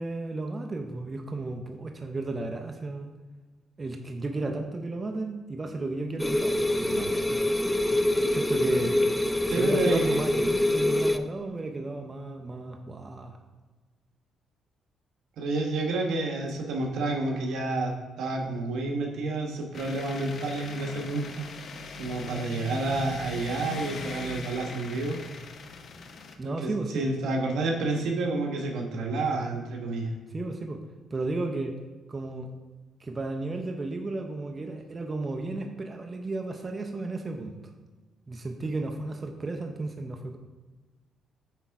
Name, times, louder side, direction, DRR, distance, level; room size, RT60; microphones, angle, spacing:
voice 1, 0.0-3.1 3.8-7.4 8.3-9.0 9.4-13.4 26.4-27.1 30.3-30.8 31.1-31.8 32.1-32.5 33.0-37.5 38.3-40.4, right 2 dB, 30° right, 4 dB, 0.7 m, -33 dB
sound 1, 6.2-11.2, left 1 dB, 10° left, 0.4 m, -25 dB
voice 2, 9.5-10.2 15.4-21.4 22.0-25.2 26.4-30.1, right 2 dB, 80° right, 1 dB, 1.1 m, -29 dB
sound 2, 19.7-26.4, left 4 dB, 60° left, 0.7 m, -40 dB
8.2 x 3.6 x 4.6 m, 1.3 s
cardioid pair, 90°, 0 cm